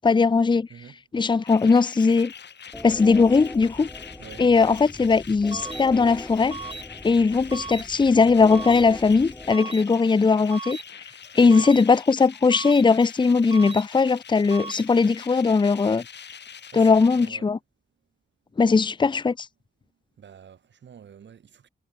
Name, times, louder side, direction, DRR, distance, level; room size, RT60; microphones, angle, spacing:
voice 1, 0.0-0.7 1.1-2.3 2.8-3.9 4.4-6.6 7.0-10.8 11.4-16.0 16.7-17.6 18.6-19.5, left 4 dB, 25° left, 0.7 m, -19 dB
voice 2, 0.7-1.1 4.2-4.5 11.4-11.7 16.7-17.5 20.2-21.7, right 8 dB, 85° right, 6.5 m, -47 dB
sound 1, 1.3-17.3, left 7 dB, 70° left, 4.1 m, -44 dB
sound 2, 2.7-10.4, left 1 dB, 10° left, 1.5 m, -41 dB
sound 3, 5.5-5.8 6.5-6.8 7.5-7.8 8.5-8.8 9.5-9.8 10.5-10.8 11.5-11.8 12.5-12.8 13.5-13.8 14.5-14.8, right 4 dB, 30° right, 1.0 m, -36 dB
wide cardioid pair, 135°, 18 cm